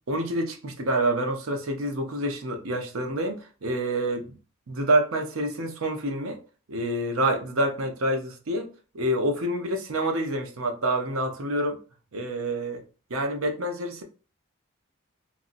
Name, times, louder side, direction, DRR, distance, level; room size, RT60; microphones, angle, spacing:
voice 1, 0.1-4.4 4.7-6.4 6.7-8.7 8.9-11.8 12.1-12.8 13.1-14.0, right 1 dB, 85° right, 0.7 m, -27 dB
3.0 x 2.6 x 2.5 m
head